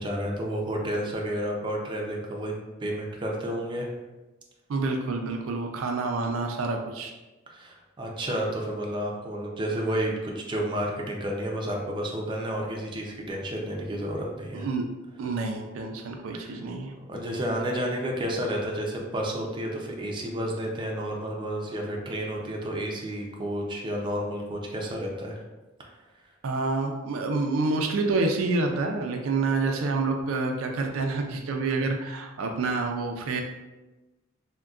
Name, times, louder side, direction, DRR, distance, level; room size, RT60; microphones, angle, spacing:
voice 1, 0.0-2.5 2.8-3.9 7.5-14.7 16.4-16.6 17.1-25.4 25.9-26.0, equal, 25° right, -1 dB, 0.4 m, -31 dB
voice 2, 4.7-7.1 14.5-14.8 15.2-16.9 26.4-33.4, right 3 dB, 90° right, 3 dB, 0.4 m, -28 dB
3.6 x 2.2 x 2.3 m, 1.1 s
head